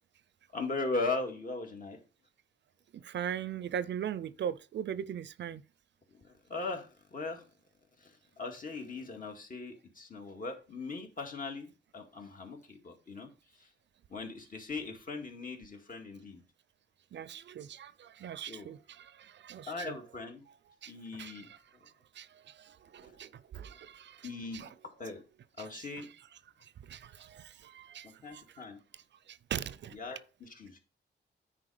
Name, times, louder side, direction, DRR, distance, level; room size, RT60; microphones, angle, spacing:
voice 1, 0.5-2.0 6.1-7.4 8.0-13.7 14.1-16.4 18.5-18.7 19.7-20.4 20.9-21.5 24.2-25.2 25.6-26.1 28.0-28.8 29.9-30.8, left 3 dB, 50° left, 2.1 m, -39 dB
voice 2, 3.0-5.6 17.1-20.0 20.8-20.9 21.2-21.6 22.2-22.3 22.6-24.7 25.6-26.1 26.9-28.4 29.3-30.0, right 9 dB, 75° right, 0.5 m, -40 dB
9.8 x 4.4 x 5.0 m
wide cardioid pair, 110°, 19 cm